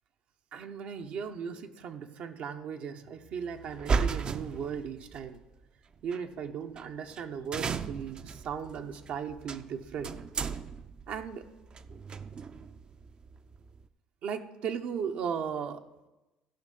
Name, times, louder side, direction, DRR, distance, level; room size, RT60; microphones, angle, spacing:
voice 1, 0.5-5.4 6.0-10.2 11.1-11.5 14.2-15.8, right 7 dB, 65° right, 5 dB, 0.9 m, -37 dB
sound 1, 3.7-5.2 6.1-6.2 6.8-6.9 7.1-7.2 7.5-13.8, right 5 dB, 40° right, 0.5 m, -35 dB
15.5 x 5.6 x 5.4 m, 1.0 s
cardioid pair, 95°, 2 cm